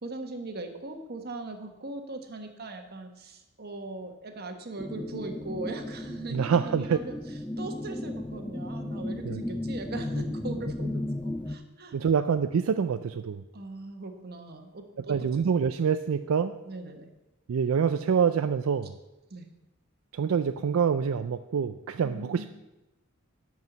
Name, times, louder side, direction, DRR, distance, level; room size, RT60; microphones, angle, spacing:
voice 1, 0.0-12.0 13.5-15.6 16.6-17.1 19.3-19.5 22.0-22.5, right 2 dB, 50° right, 5 dB, 1.2 m, -40 dB
sound 1, 4.8-11.6, left 1 dB, 5° left, 0.4 m, -35 dB
voice 2, 6.3-7.0 9.3-9.4 11.9-13.4 15.1-16.5 17.5-18.9 20.1-22.5, right 6 dB, 75° right, 10 dB, 0.4 m, -26 dB
11.0 x 4.7 x 7.9 m, 1.0 s
head